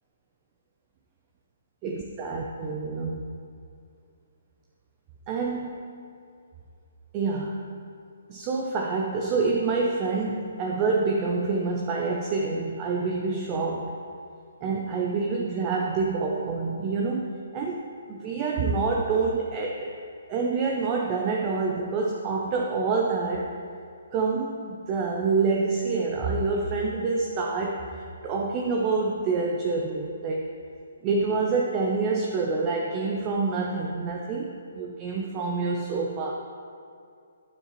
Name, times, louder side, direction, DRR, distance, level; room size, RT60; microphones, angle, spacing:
voice 1, 1.8-3.4 5.3-5.8 7.1-7.7 8.3-14.0 14.6-19.9 20.3-23.5 24.1-30.4 31.0-36.3, right 4 dB, 25° right, 0 dB, 0.6 m, -27 dB
9.3 x 7.2 x 3.0 m, 2.4 s
hypercardioid pair, 155°, 0 cm